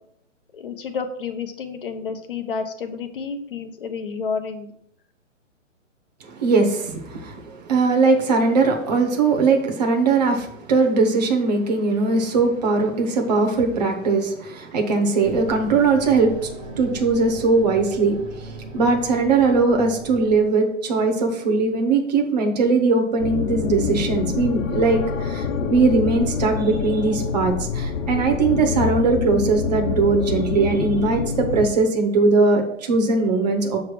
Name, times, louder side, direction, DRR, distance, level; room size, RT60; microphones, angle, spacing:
voice 1, 0.5-4.7, left 5 dB, 45° left, 7 dB, 0.8 m, -30 dB
voice 2, 6.2-33.8, right 3 dB, 35° right, 2 dB, 0.8 m, -20 dB
sound 1, 15.2-20.4, right 1 dB, 5° left, 0.6 m, -37 dB
sound 2, 23.2-31.7, left 6 dB, 80° left, 0.8 m, -26 dB
6.9 x 3.3 x 6.1 m, 0.72 s
hypercardioid pair, 175°, 39 cm